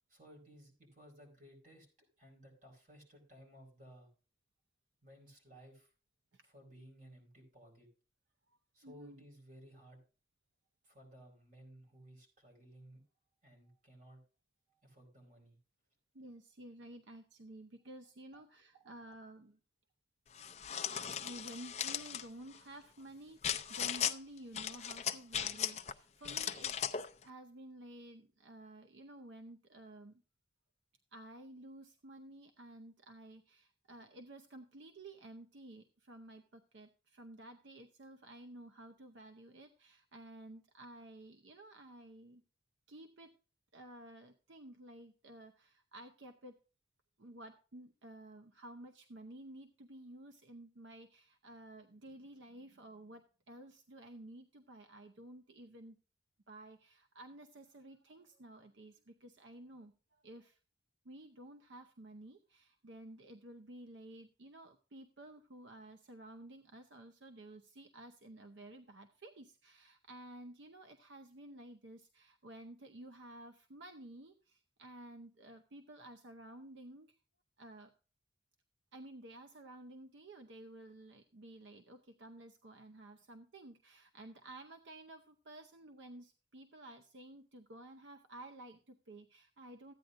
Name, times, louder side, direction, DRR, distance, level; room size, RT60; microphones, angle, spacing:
voice 1, 0.1-1.9 2.2-4.1 5.0-5.9 6.4-7.9 8.7-10.0 10.8-13.0 13.4-14.2 14.8-15.6 18.3-18.4 18.7-18.8, equal, 40° right, 1 dB, 4.5 m, -58 dB
voice 2, 8.8-9.2 16.1-19.6 21.2-26.7 27.2-30.2 31.1-42.4 42.9-43.3 43.7-46.5 47.2-56.0 56.5-60.6 61.0-77.2 77.6-77.9 78.9-89.9, right 1 dB, 70° right, 6 dB, 0.7 m, -53 dB
sound 1, 20.4-22.2 23.4-24.2 24.6-25.9 26.2-27.1, left 9 dB, 35° left, 0.5 m, -37 dB
14.5 x 9.2 x 2.5 m, 0.34 s
head